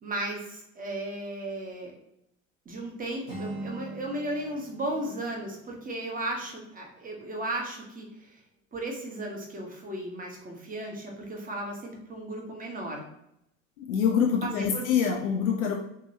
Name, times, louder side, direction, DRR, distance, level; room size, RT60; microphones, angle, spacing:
voice 1, 0.0-1.9 2.6-8.4 8.7-13.1 14.4-14.9, right 1 dB, 20° right, 0 dB, 1.1 m, -35 dB
Acoustic guitar, 3.2-7.2, right 1 dB, 85° right, 1.4 m, -43 dB
voice 2, 13.8-15.7, left 7 dB, 80° left, 1 dB, 0.6 m, -25 dB
3.7 x 3.0 x 2.8 m, 0.81 s
hypercardioid pair, 75°, 39 cm